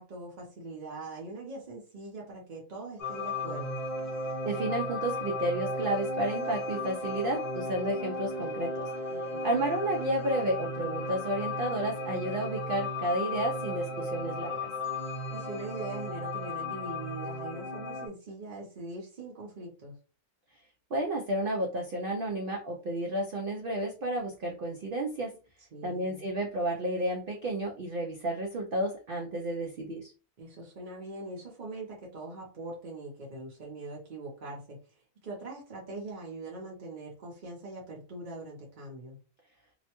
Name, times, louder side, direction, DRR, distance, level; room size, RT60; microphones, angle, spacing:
voice 1, 0.0-3.8 9.1-9.7 15.3-19.9 25.7-26.3 30.4-39.2, right 2 dB, 45° right, -3 dB, 0.7 m, -42 dB
sound 1, 3.0-18.1, left 1 dB, 45° left, 0.7 m, -35 dB
voice 2, 4.5-8.9 9.4-14.7 20.9-25.4 25.8-30.1, right 1 dB, 85° right, 0 dB, 0.4 m, -31 dB
2.8 x 2.1 x 2.8 m, 0.34 s
omnidirectional pair, 1.6 m